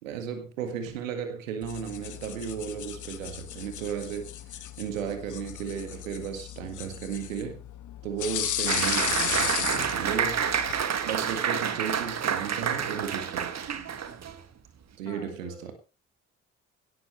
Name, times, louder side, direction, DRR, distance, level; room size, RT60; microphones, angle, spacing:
voice 1, 0.0-7.6 8.0-10.4 11.0-13.6 15.0-15.7, right 7 dB, 75° right, 8 dB, 1.9 m, -35 dB
sound 1, 1.6-10.8, left 11 dB, 50° left, 1.4 m, -35 dB
Applause, 8.7-14.4, right 7 dB, 40° right, 1.7 m, -28 dB
voice 2, 15.1-15.7, left 7 dB, 70° left, 5 dB, 2.2 m, -46 dB
17.5 x 12.0 x 3.2 m, 0.33 s
figure-of-eight pair, 40°, 39 cm